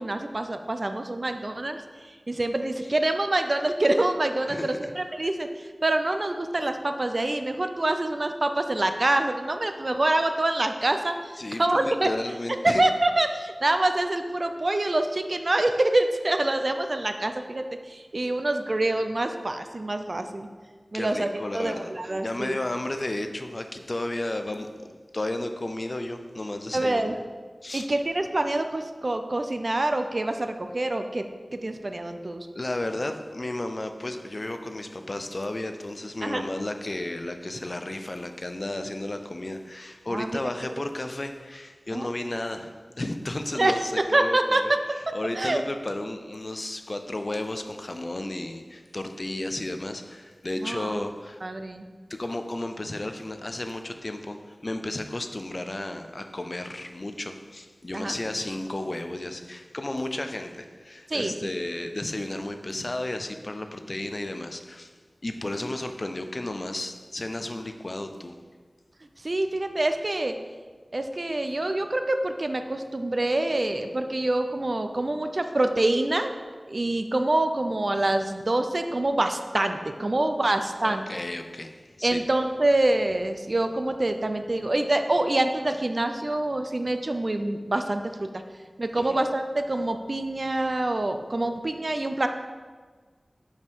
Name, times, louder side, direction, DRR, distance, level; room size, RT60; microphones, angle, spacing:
voice 1, 0.0-1.8 2.3-12.2 12.6-20.5 20.9-22.6 26.7-27.1 27.7-31.3 31.5-32.5 36.2-36.4 40.1-40.4 41.9-42.1 43.5-43.7 44.1-44.6 45.3-45.6 50.6-51.0 51.4-51.9 57.9-58.1 61.1-61.3 69.2-70.3 70.9-76.3 76.7-81.0 82.0-88.3 88.8-92.3, right 2 dB, 50° right, 7 dB, 0.5 m, -26 dB
voice 2, 4.5-4.9 11.4-12.8 20.9-24.9 25.1-27.2 27.6-27.9 32.5-44.7 45.1-51.4 52.1-64.9 65.2-68.3 80.8-82.2 89.0-89.2, left 1 dB, 45° left, 7 dB, 0.5 m, -33 dB
5.6 x 5.1 x 4.6 m, 1.5 s
wide cardioid pair, 65°, 0 cm